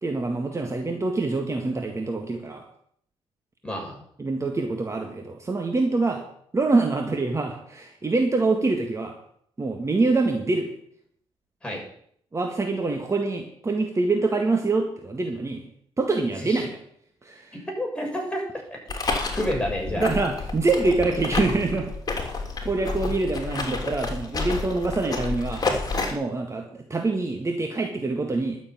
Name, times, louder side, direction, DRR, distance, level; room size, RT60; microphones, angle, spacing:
voice 1, 0.0-2.6 4.2-6.2 6.5-9.2 9.6-10.7 12.3-15.6 16.0-16.7 17.2-17.6 19.9-21.9 22.6-25.7 26.1-28.6, right 3 dB, 30° right, 3 dB, 1.9 m, -25 dB
voice 2, 3.6-3.9 11.6-11.8 16.4-16.7 17.7-18.8 19.3-20.1, equal, 10° left, 0 dB, 6.7 m, -29 dB
sound 1, 18.9-26.1, left 3 dB, 35° left, 3.2 m, -30 dB
12.0 x 7.2 x 8.8 m, 0.66 s
cardioid pair, 80°, 11 cm